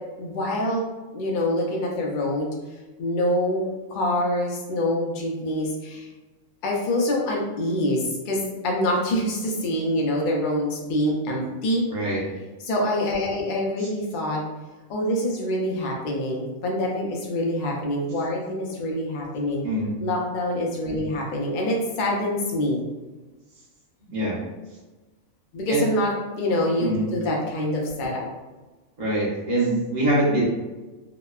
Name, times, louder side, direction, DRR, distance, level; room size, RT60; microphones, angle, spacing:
voice 1, 0.2-0.8 1.1-2.5 3.0-6.1 6.6-11.9 12.7-14.4 14.9-19.6 20.0-22.8 25.5-28.3, left 1 dB, 65° left, -1 dB, 0.5 m, -25 dB
voice 2, 11.9-12.2 13.8-13.9 19.6-20.0 24.1-24.4 25.7-25.8 26.8-27.1 29.0-30.4, right 1 dB, 35° right, -6 dB, 0.8 m, -24 dB
2.8 x 2.1 x 2.3 m, 1.2 s
omnidirectional pair, 1.4 m